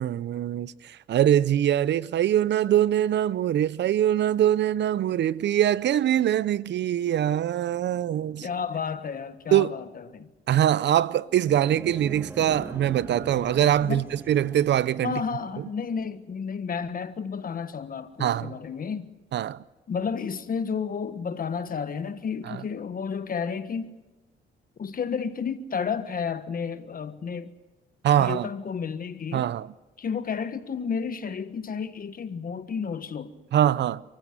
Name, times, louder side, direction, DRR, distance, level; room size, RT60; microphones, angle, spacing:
voice 1, 0.0-8.5 9.5-9.7 10.5-15.2 18.2-18.6 19.3-19.6 22.5-22.6 28.0-28.5 29.3-29.7 33.5-34.0, right 11 dB, 60° right, 0.6 m, -23 dB
voice 2, 8.4-10.3 13.8-14.1 15.0-19.1 19.9-24.0 24.8-27.5 28.2-29.5 30.0-33.3, left 6 dB, 45° left, 1.4 m, -31 dB
sound 1, 11.2-15.9, right 2 dB, 10° right, 1.4 m, -41 dB
29.5 x 15.0 x 7.8 m
cardioid pair, 90°, 20 cm